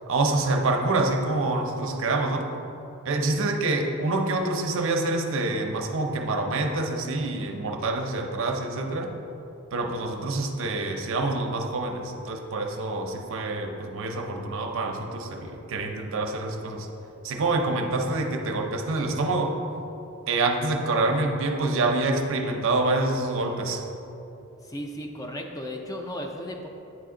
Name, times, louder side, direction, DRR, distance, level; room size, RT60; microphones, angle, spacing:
voice 1, 0.1-2.5 3.0-9.1 9.7-16.9 17.2-19.6 20.3-23.9, right 2 dB, 65° right, 4 dB, 0.6 m, -26 dB
voice 2, 24.6-26.7, equal, 15° left, 2 dB, 0.4 m, -35 dB
8.8 x 3.4 x 3.7 m, 2.9 s
head